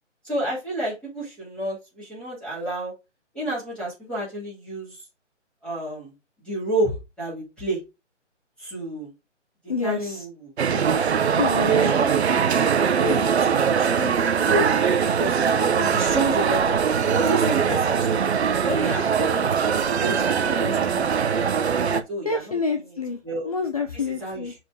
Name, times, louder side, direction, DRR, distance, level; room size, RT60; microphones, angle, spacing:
voice 1, 0.2-2.9 3.3-5.0 5.6-6.1 6.4-7.8 8.6-9.1 9.8-11.4 11.7-12.2 13.0-15.4 15.7-18.3 18.6-21.5 21.9-22.6 23.2-23.5 23.9-24.4, right 1 dB, 5° left, 2.6 m, -30 dB
voice 2, 9.7-10.3 11.4-11.9 22.2-23.2 23.4-24.5, left 4 dB, 30° left, 0.5 m, -27 dB
sound 1, 10.6-22.0, right 7 dB, 60° right, 0.8 m, -21 dB
6.3 x 4.5 x 3.5 m
hypercardioid pair, 160°, 37 cm